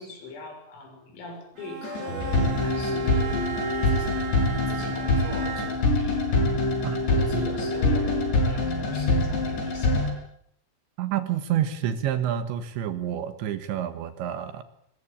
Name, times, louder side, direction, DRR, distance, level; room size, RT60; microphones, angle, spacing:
voice 1, 0.0-3.5 3.9-4.3 4.7-6.3 7.1-10.1, left 3 dB, 80° left, 3 dB, 9.1 m, -41 dB
Bowed string instrument, 1.6-6.0, right 7 dB, 50° right, 4.3 m, -36 dB
sound 1, 1.8-10.1, left 2 dB, 60° left, 8.1 m, -24 dB
voice 2, 6.8-7.4 11.0-14.6, right 10 dB, 70° right, 11 dB, 3.4 m, -29 dB
22.5 x 21.5 x 8.7 m, 0.69 s
omnidirectional pair, 6.0 m